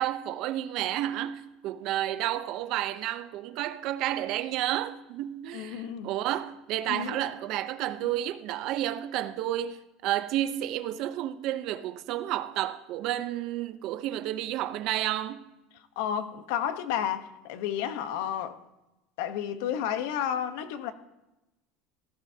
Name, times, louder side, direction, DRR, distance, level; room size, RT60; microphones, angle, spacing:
voice 1, 0.0-15.5, right 13 dB, 50° right, 0.7 m, -31 dB
voice 2, 5.5-6.1 6.9-7.2 8.0-8.1 16.0-18.6 19.2-20.9, left 9 dB, 75° left, 1.0 m, -31 dB
17.0 x 14.5 x 2.8 m
cardioid pair, 165°, 0 cm